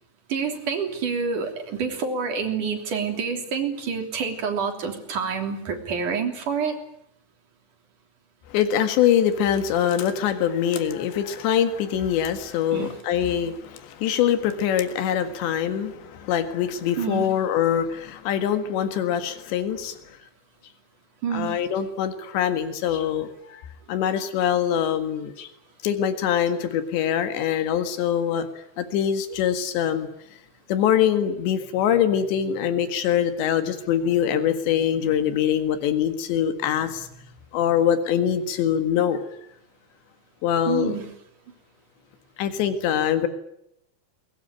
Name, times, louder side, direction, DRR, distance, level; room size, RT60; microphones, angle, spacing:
voice 1, 0.3-6.8 12.7-13.0 17.0-17.3 21.2-21.6 40.7-41.1, right 6 dB, 50° right, 4 dB, 4.6 m, -27 dB
voice 2, 8.5-20.0 21.3-23.6 23.9-25.5 25.8-30.1 30.7-37.1 37.5-39.2 40.4-40.9 42.4-43.3, left 9 dB, 90° left, 9 dB, 4.0 m, -23 dB
22.5 x 21.0 x 9.9 m, 0.77 s
omnidirectional pair, 4.9 m